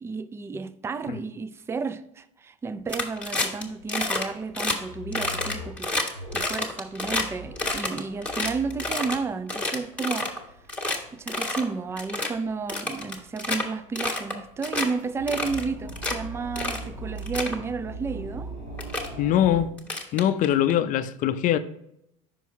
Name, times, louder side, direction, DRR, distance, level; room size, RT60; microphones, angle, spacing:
voice 1, 0.0-5.9 6.3-10.3 11.1-18.5, right 4 dB, 15° right, 0.4 m, -32 dB
sound 1, 2.7-19.7, right 1 dB, 90° right, 2.5 m, -42 dB
sound 2, 2.9-3.6 3.9-4.2 4.5-4.8 5.1-7.2 7.6-9.2 9.5-10.4 10.7-11.0 11.3-11.6 12.0-12.3 12.7-13.6 14.0-14.3 14.6-14.9 15.3-16.1 16.6-16.8 17.2-17.6 18.4-18.5 18.8-19.1 19.8-20.7, left 2 dB, 10° left, 1.5 m, -28 dB
voice 2, 19.2-19.7 20.1-21.6, left 11 dB, 50° left, 0.5 m, -22 dB
5.7 x 4.6 x 4.1 m
hypercardioid pair, 85°, 17 cm